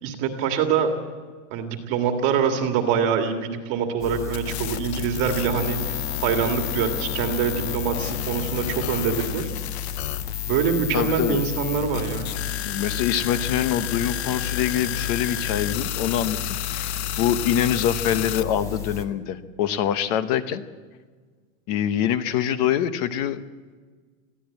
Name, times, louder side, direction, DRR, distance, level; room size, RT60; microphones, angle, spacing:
voice 1, 0.0-0.9 1.5-9.5 10.5-12.3, right 7 dB, 30° right, 5 dB, 1.8 m, -25 dB
sound 1, 4.0-19.0, left 8 dB, 10° left, 0.5 m, -34 dB
sound 2, 4.3-18.4, left 13 dB, 55° left, 0.7 m, -32 dB
voice 2, 10.9-11.4 12.6-20.6 21.7-23.4, left 10 dB, 30° left, 12 dB, 0.9 m, -25 dB
21.5 x 15.5 x 8.5 m, 1.5 s
supercardioid pair, 180°, 39 cm